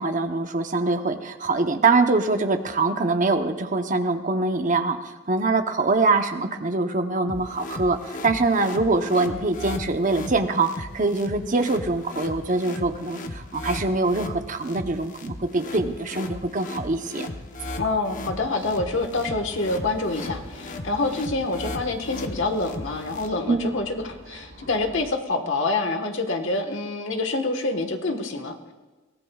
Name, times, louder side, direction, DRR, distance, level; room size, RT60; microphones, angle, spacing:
voice 1, 0.0-5.0 5.3-17.3 23.5-23.7, right 3 dB, 40° right, 6 dB, 0.8 m, -23 dB
sound 1, 7.3-23.3, left 2 dB, 40° left, 1.0 m, -36 dB
voice 2, 17.8-28.7, left 3 dB, 65° left, 5 dB, 1.4 m, -27 dB
sound 2, 18.6-25.1, right 1 dB, 75° right, 3.5 m, -46 dB
22.0 x 17.5 x 2.4 m, 1.3 s
head